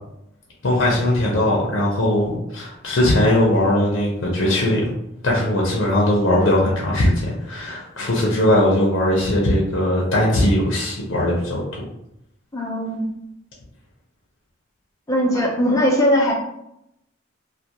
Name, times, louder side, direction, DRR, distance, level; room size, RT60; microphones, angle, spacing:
voice 1, 0.6-5.0 5.2-11.6, left 1 dB, 70° left, -3 dB, 0.6 m, -19 dB
voice 2, 12.5-13.1 15.1-16.3, equal, 15° left, -3 dB, 0.6 m, -19 dB
2.4 x 2.1 x 2.8 m, 0.79 s
head